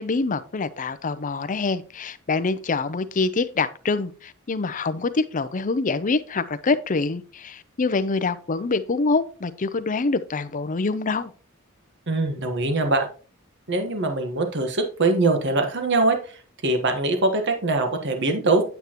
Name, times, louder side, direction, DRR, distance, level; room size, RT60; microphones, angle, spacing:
voice 1, 0.0-11.3, left 3 dB, 40° left, 0.6 m, -25 dB
voice 2, 12.1-13.1 13.7-16.2 16.6-18.6, right 2 dB, 55° right, 1.3 m, -22 dB
8.9 x 8.1 x 3.0 m
head